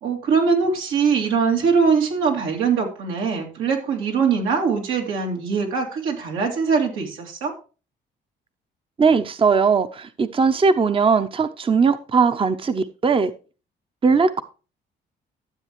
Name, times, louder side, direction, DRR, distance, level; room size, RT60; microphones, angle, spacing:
voice 1, 0.0-7.5, right 5 dB, 90° right, 2.7 m, -22 dB
voice 2, 9.0-13.3 14.0-14.4, right 5 dB, 25° right, 0.7 m, -19 dB
13.0 x 7.4 x 3.1 m
cardioid pair, 90°, 20 cm